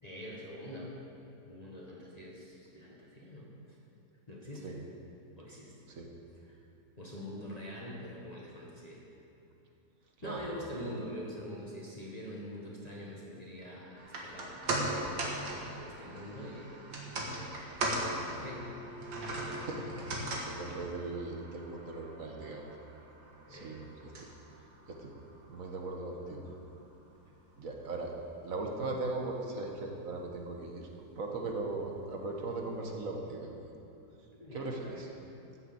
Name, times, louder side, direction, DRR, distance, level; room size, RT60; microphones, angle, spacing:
voice 1, 0.0-1.0 1.4-3.8 4.3-4.8 5.4-5.7 6.4-6.6 7.0-9.0 10.2-14.6 15.1-16.8 17.9-18.7 23.5-23.8 34.4-35.0, equal, 25° left, -5 dB, 1.7 m, -44 dB
sound 1, 14.0-26.4 26.7-26.8, right 1 dB, 80° right, 2.2 m, -39 dB
voice 2, 19.6-22.6 23.5-24.3 24.9-25.1 25.5-26.5 27.6-28.1 28.4-30.9 31.2-33.7 34.5-35.1, right 3 dB, 55° right, 1 dB, 1.7 m, -39 dB
14.0 x 6.6 x 7.9 m, 2.8 s
omnidirectional pair, 1.8 m